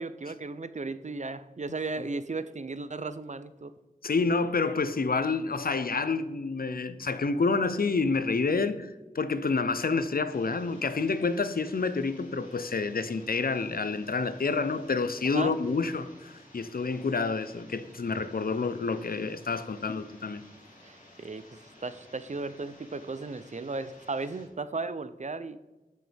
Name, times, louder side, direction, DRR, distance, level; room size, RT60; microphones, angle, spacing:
voice 1, 0.0-3.7 15.2-15.5 20.8-21.4 21.8-25.6, right 3 dB, 50° right, 0.6 m, -35 dB
voice 2, 4.0-20.4, left 4 dB, 75° left, 0.6 m, -28 dB
sound 1, 10.3-24.5, left 1 dB, 55° left, 2.8 m, -55 dB
13.5 x 6.4 x 3.5 m
wide cardioid pair, 50°, 15 cm